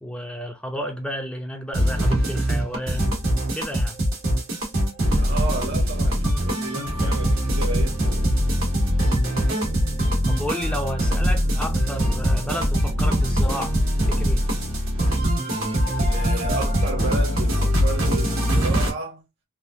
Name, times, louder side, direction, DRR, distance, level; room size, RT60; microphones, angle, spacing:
voice 1, 0.0-3.2 3.5-4.0 9.0-9.4 10.3-13.8 14.1-14.5, equal, 5° left, 0.5 m, -32 dB
sound 1, 1.7-18.9, equal, 85° right, 1.6 m, -22 dB
voice 2, 5.1-8.3 16.1-19.2, right 2 dB, 60° right, 1.3 m, -32 dB
3.5 x 2.6 x 2.6 m
head